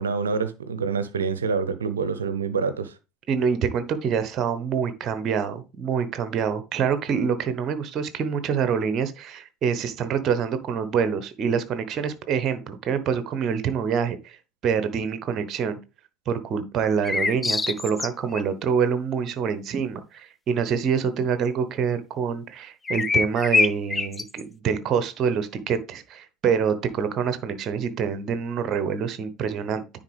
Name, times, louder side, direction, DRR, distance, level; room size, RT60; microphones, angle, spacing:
voice 1, 0.0-3.0, right 5 dB, 75° right, 0.7 m, -26 dB
voice 2, 3.3-14.4 14.6-15.8 16.3-29.8, right 6 dB, 40° right, 1.0 m, -26 dB
sound 1, 17.0-18.4 22.9-24.4, left 4 dB, 20° left, 0.3 m, -24 dB
9.6 x 4.0 x 3.3 m
figure-of-eight pair, 70°, 0 cm